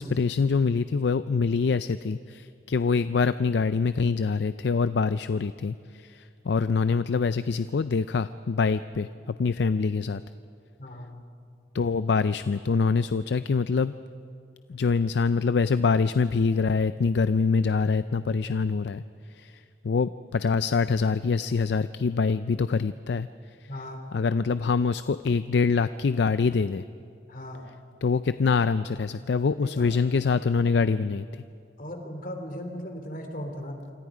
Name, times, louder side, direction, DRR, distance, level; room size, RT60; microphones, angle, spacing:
voice 1, 0.0-10.2 11.7-13.9 14.7-19.0 19.3-23.3 23.6-23.7 24.1-26.8 28.0-31.4, left 4 dB, 70° left, 14 dB, 0.4 m, -25 dB
voice 2, 10.8-11.2 23.7-24.0 27.3-27.7 29.6-29.9 31.8-33.8, equal, 50° left, 5 dB, 3.0 m, -37 dB
27.5 x 26.0 x 5.0 m, 2.4 s
head